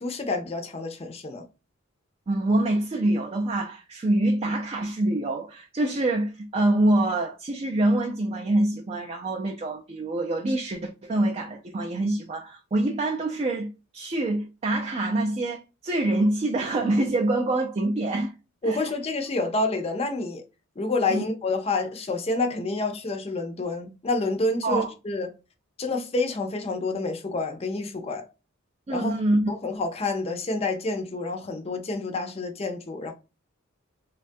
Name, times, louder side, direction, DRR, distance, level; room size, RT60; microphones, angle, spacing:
voice 1, 0.0-1.5 18.6-20.4 20.8-25.3 25.8-28.2 28.9-29.1 29.5-33.1, left 2 dB, 30° left, 0.5 m, -28 dB
voice 2, 2.3-18.3 18.6-18.9 21.1-21.2 24.6-24.9 28.9-29.5, right 1 dB, 30° right, 0.3 m, -25 dB
3.2 x 2.3 x 2.5 m
head